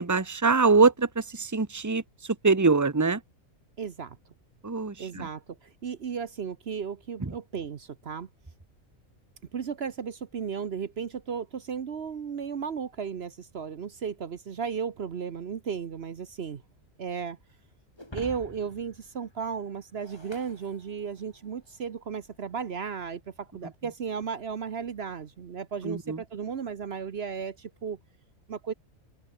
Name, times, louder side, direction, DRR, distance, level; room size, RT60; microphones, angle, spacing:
voice 1, 0.0-3.2 4.6-5.3 7.2-7.3 25.8-26.2, right 4 dB, 15° right, 1.1 m, -24 dB
voice 2, 3.8-4.2 5.0-8.3 9.5-16.6 17.0-17.4 18.1-28.0 28.5-28.7, right 6 dB, 50° right, 1.1 m, -35 dB
Shatter, 18.0-21.5, left 1 dB, 20° left, 5.9 m, -47 dB
open air
omnidirectional pair, 1.4 m